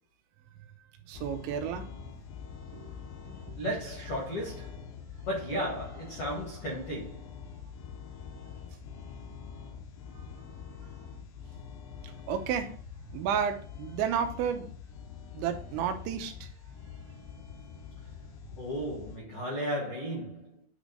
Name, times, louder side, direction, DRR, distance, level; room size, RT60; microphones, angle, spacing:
sound 1, 1.1-19.2, left 7 dB, 75° left, 3.0 m, -45 dB
voice 1, 1.1-1.9 2.7-2.9 12.3-12.7 13.1-14.7 15.3-16.5, right 8 dB, 80° right, 3.3 m, -31 dB
voice 2, 3.6-4.9 5.2-7.4 18.6-20.6, equal, 50° left, 1.7 m, -35 dB
9.2 x 3.3 x 5.2 m
omnidirectional pair, 5.3 m